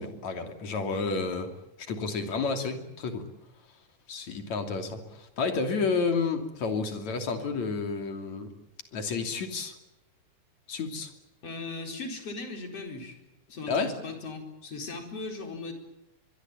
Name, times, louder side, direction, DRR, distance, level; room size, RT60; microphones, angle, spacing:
voice 1, 0.0-1.5 1.8-3.3 4.1-8.5 8.9-9.8 10.7-11.1 13.7-14.0, left 4 dB, 70° left, 7 dB, 4.2 m, -30 dB
voice 2, 11.4-13.1 13.5-15.7, left 3 dB, 55° left, 4 dB, 5.5 m, -38 dB
24.0 x 22.5 x 8.6 m, 0.92 s
omnidirectional pair, 3.4 m